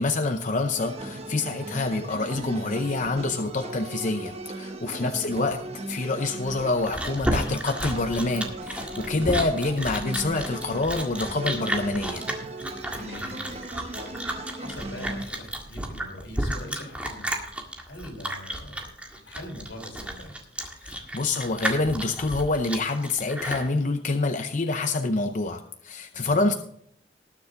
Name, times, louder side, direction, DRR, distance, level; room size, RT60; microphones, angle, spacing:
voice 1, 0.0-5.6 5.9-12.2 20.8-26.5, left 3 dB, 45° left, 7 dB, 0.7 m, -27 dB
sound 1, 0.7-15.3, right 2 dB, 35° right, 1.1 m, -38 dB
voice 2, 1.5-1.9 4.8-5.2 9.0-9.3 12.9-17.3 17.9-18.8 19.1-20.3 26.1-26.5, left 1 dB, 85° left, 2 dB, 3.7 m, -42 dB
Chewing mastication, 6.4-23.7, right 1 dB, 5° right, 1.8 m, -32 dB
19.5 x 7.0 x 3.7 m, 0.69 s
head